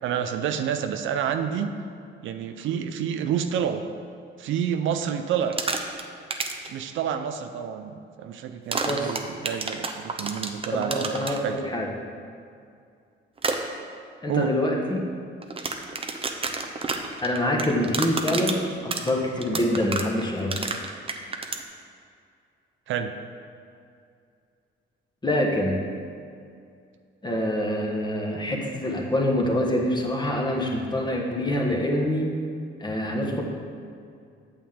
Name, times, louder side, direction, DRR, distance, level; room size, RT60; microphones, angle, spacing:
voice 1, 0.0-1.7 2.2-3.8 4.4-5.6 6.7-11.6 14.3-14.5 22.9-23.1, right 8 dB, 80° right, 7 dB, 0.6 m, -28 dB
sound 1, 5.4-6.0 6.3-6.7 8.7-11.4 13.4-13.6 15.4-21.6, right 4 dB, 30° right, 0.7 m, -29 dB
voice 2, 8.8-9.2 10.7-11.9 14.2-15.1 17.2-20.6 25.2-25.8 27.2-32.3 32.8-33.4, left 1 dB, 20° left, 0 dB, 1.3 m, -25 dB
8.7 x 7.2 x 3.7 m, 2.4 s
cardioid pair, 90°, 20 cm